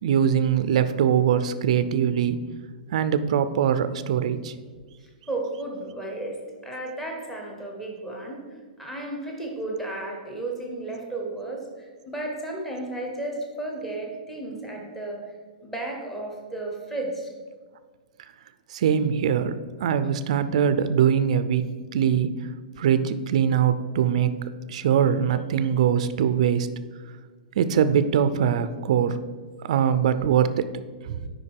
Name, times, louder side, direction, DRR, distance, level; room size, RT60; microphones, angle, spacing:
voice 1, 0.0-2.4 2.9-4.5 18.7-19.5 19.8-22.5 22.8-24.4 24.7-26.7 27.6-29.2 29.6-30.7 31.0-31.2, right 8 dB, 45° right, 12 dB, 0.4 m, -22 dB
voice 2, 5.0-15.3 15.6-17.3, right 2 dB, 5° left, 0 dB, 0.9 m, -33 dB
8.7 x 5.2 x 4.7 m, 1.5 s
hypercardioid pair, 180°, 5 cm